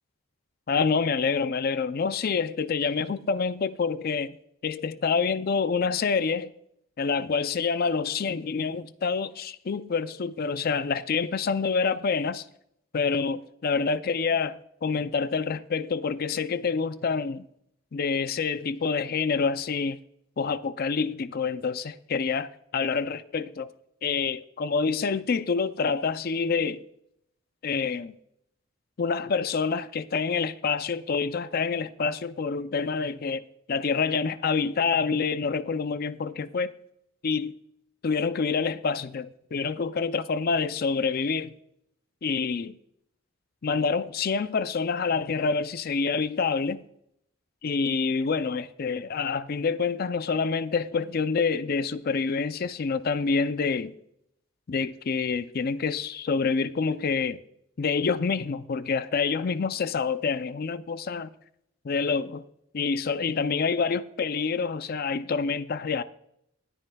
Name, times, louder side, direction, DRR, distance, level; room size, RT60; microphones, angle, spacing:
voice 1, 0.7-4.4 4.6-6.5 7.0-12.4 12.9-17.5 17.9-20.0 20.4-23.7 24.0-26.8 27.6-28.2 29.0-33.4 33.7-36.7 37.2-37.5 38.0-41.5 42.2-42.8 43.6-46.8 47.6-53.9 54.7-57.4 57.8-61.3 61.8-62.4 62.7-66.0, left 5 dB, 45° left, 0.4 m, -27 dB
20.0 x 9.9 x 2.3 m
head